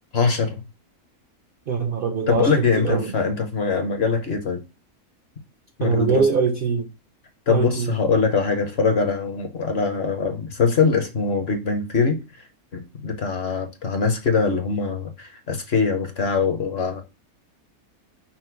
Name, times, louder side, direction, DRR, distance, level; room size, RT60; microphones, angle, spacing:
voice 1, 0.1-0.6 2.3-4.6 5.8-6.3 7.5-12.4 12.7-17.0, left 5 dB, 50° left, 0.9 m, -22 dB
voice 2, 1.7-3.1 5.8-6.9 7.5-7.9, right 5 dB, 60° right, 0.5 m, -23 dB
5.9 x 2.0 x 4.5 m
omnidirectional pair, 1.5 m